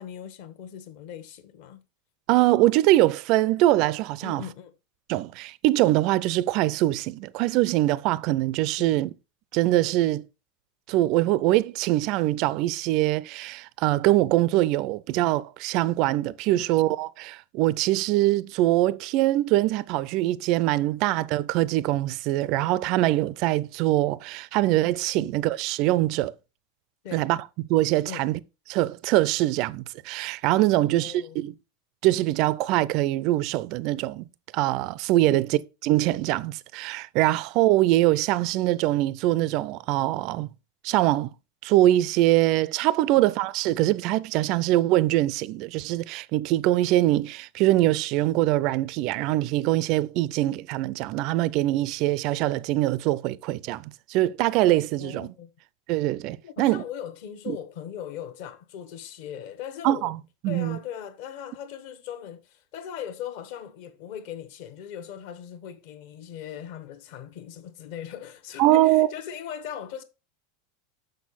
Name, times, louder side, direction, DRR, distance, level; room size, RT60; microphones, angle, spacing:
voice 1, 0.0-1.8 4.2-4.7 8.8-9.0 16.5-16.7 25.1-25.3 27.0-27.3 28.0-28.2 30.7-31.4 35.2-35.4 43.1-43.2 55.0-55.5 56.4-60.1 60.5-70.0, left 9 dB, 45° left, 1.0 m, -39 dB
voice 2, 2.3-4.4 5.1-9.1 9.5-10.3 10.9-26.3 27.1-27.4 27.7-28.4 28.7-31.5 32.0-34.3 34.5-40.5 40.8-41.3 41.6-55.3 55.9-56.8 57.5-57.6 59.8-60.2 60.4-60.8 68.6-69.1, right 16 dB, 35° right, 0.4 m, -23 dB
6.5 x 6.3 x 4.0 m
supercardioid pair, 175°, 0 cm